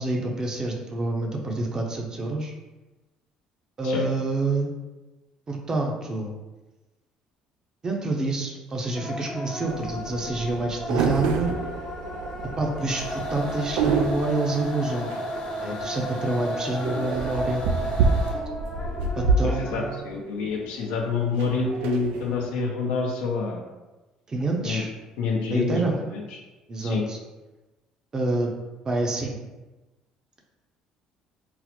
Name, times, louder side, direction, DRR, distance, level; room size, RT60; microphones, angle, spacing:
voice 1, 0.0-2.5 3.8-4.7 5.5-6.3 7.8-11.5 12.6-15.1 15.6-17.6 19.2-19.9 24.3-24.9 25.5-26.0 26.7-27.2 28.1-28.5 28.8-29.4, right 2 dB, 30° right, 1 dB, 0.7 m, -27 dB
sound 1, 8.9-20.0, left 1 dB, 30° left, 0.6 m, -36 dB
sound 2, 9.6-22.6, right 4 dB, 80° right, 0.3 m, -29 dB
sound 3, 12.9-18.5, right 1 dB, 55° left, 0.9 m, -34 dB
voice 2, 19.4-23.6 24.6-24.8 25.2-26.4 26.8-27.1, left 4 dB, 80° left, 0 dB, 0.6 m, -27 dB
3.8 x 2.0 x 3.0 m, 1.1 s
supercardioid pair, 80°, 2 cm